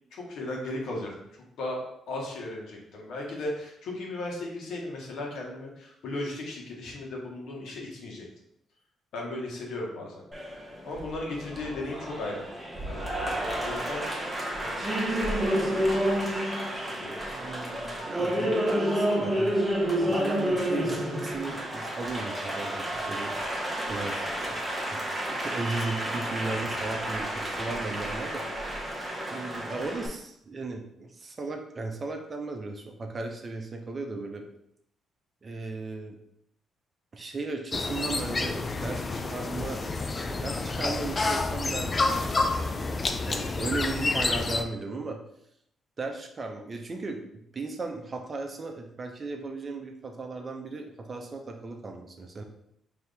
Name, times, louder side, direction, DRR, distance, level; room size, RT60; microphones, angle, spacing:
voice 1, 0.1-1.1 1.6-8.3 9.1-10.3 10.6-12.5 12.8-14.1 14.5-14.9 15.4-16.3 16.6-17.8 29.5-29.7, left 2 dB, 75° left, -1 dB, 1.2 m, -37 dB
Applause, 10.3-30.1, equal, 10° right, 1.0 m, -30 dB
voice 2, 17.3-19.6 20.0-23.4 23.9-28.5 29.3-34.5 35.4-36.2 37.1-39.8 40.2-43.0 43.3-45.2 46.0-47.2 47.5-52.4, right 3 dB, 35° right, 3 dB, 0.7 m, -36 dB
sound 1, 37.7-44.6, left 3 dB, 30° left, 0.4 m, -29 dB
4.1 x 2.9 x 3.4 m, 0.76 s
cardioid pair, 90°, 0 cm